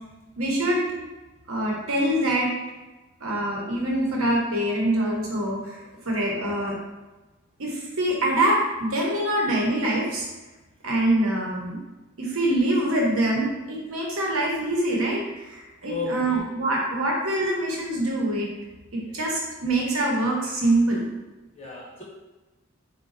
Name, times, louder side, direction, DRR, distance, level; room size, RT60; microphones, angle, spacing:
voice 1, 0.4-0.8 1.5-2.5 3.2-5.8 6.0-6.7 7.6-10.2 10.8-11.8 12.2-18.5 18.9-21.1, right 1 dB, 80° right, -2 dB, 0.8 m, -24 dB
voice 2, 15.8-16.4 19.1-19.2 21.6-22.0, left 3 dB, 30° left, -5 dB, 0.5 m, -32 dB
3.9 x 2.2 x 2.5 m, 1.1 s
head